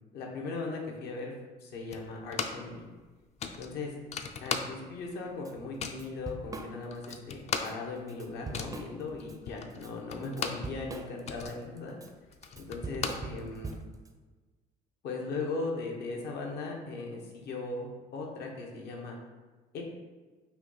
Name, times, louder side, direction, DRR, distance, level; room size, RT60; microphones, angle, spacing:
voice 1, 0.1-1.3 1.6-2.8 3.6-3.9 4.4-12.0 12.6-13.8 15.0-17.9 18.1-19.2 19.7-19.9, left 3 dB, 75° left, 0 dB, 1.0 m, -38 dB
sound 1, 1.9-2.7 3.0-3.1 3.4-5.1 5.4-6.1 6.6-6.7 6.9-10.7 11.1-13.8, left 6 dB, 40° left, 0.4 m, -37 dB
Drum kit / Drum, 5.5-5.6 5.9-7.2 7.5-7.7 8.1-9.4 9.7-14.1, right 3 dB, 20° right, 0.4 m, -42 dB
5.7 x 2.3 x 4.0 m, 1.3 s
cardioid pair, 110°, 17 cm